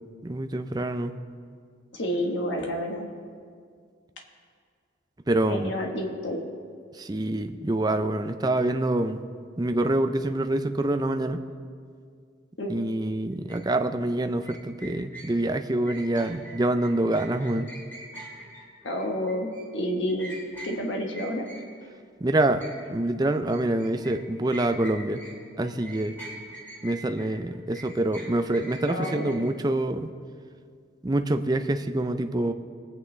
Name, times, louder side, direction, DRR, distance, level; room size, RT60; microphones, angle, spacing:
voice 1, 0.2-1.1 5.3-5.7 6.9-9.2 9.6-11.4 12.7-17.7 22.2-22.6 22.9-25.2 25.6-26.2 26.8-30.1 31.0-32.5, right 1 dB, 20° right, 7 dB, 0.5 m, -26 dB
voice 2, 1.9-3.1 5.5-6.4 12.6-12.7 18.8-20.3 20.6-21.5 28.9-29.5, equal, 70° left, 1 dB, 1.3 m, -29 dB
sound 1, 13.5-13.6 14.4-22.0 22.3-25.4 25.6-29.5, right 1 dB, 10° left, 2.5 m, -44 dB
21.5 x 9.0 x 3.3 m, 2.1 s
head